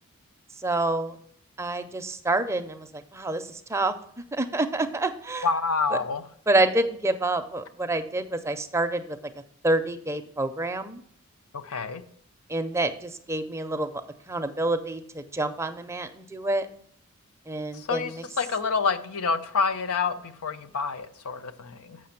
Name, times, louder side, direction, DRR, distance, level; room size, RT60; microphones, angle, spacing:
voice 1, 0.6-1.2 1.6-3.9 4.3-5.5 5.9-6.0 6.5-9.0 9.6-11.0 12.5-13.9 14.3-16.7 17.5-18.2, right 2 dB, 10° right, 8 dB, 0.4 m, -27 dB
voice 2, 5.4-6.2 11.5-12.0 17.7-22.0, left 4 dB, 85° left, 10 dB, 0.7 m, -28 dB
7.5 x 5.9 x 5.8 m, 0.63 s
head